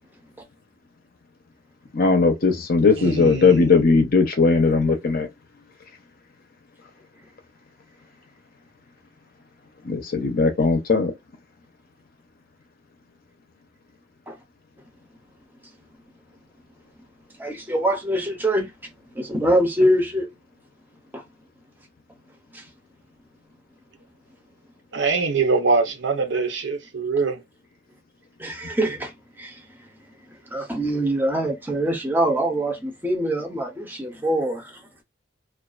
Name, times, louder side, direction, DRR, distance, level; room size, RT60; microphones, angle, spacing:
voice 1, 1.9-5.3 9.8-11.1, left 4 dB, 50° left, 0.6 m, -18 dB
voice 2, 3.0-3.7 24.9-27.4, right 4 dB, 65° right, 0.7 m, -23 dB
voice 3, 17.4-18.7 19.2-20.3 21.1-21.2 22.5-22.6 28.4-29.1 29.4-29.5 30.5-34.6, right 1 dB, 10° right, 0.6 m, -23 dB
2.4 x 2.3 x 2.4 m
head